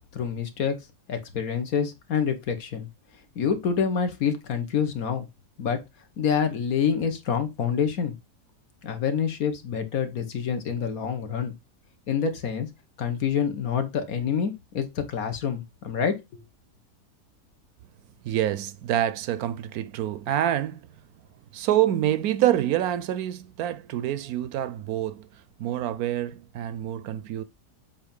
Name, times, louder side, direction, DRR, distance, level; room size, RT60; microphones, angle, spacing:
voice 1, 0.1-0.7 1.1-2.9 3.3-5.3 5.6-5.8 6.2-8.1 8.8-11.5 12.1-12.7 13.0-16.4, left 7 dB, 65° left, 1.6 m, -27 dB
voice 2, 18.2-20.8 21.5-25.3 25.6-27.4, right 12 dB, 75° right, 1.0 m, -26 dB
7.7 x 2.9 x 5.2 m
omnidirectional pair, 1.7 m